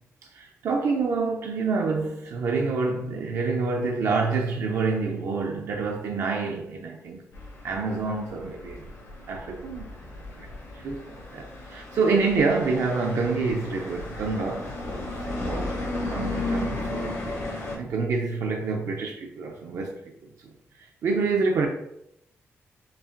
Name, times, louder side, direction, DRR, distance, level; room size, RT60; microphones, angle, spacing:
voice 1, 0.3-7.2 7.6-8.9 9.3-9.9 10.4-10.5 10.8-14.7 15.3-15.7 16.0-17.2 17.7-20.1 21.0-21.7, right 4 dB, 70° right, 0.5 m, -27 dB
sound 1, 7.3-17.8, left 2 dB, 75° left, 1.3 m, -34 dB
5.4 x 2.4 x 2.5 m
wide cardioid pair, 135°, 5 cm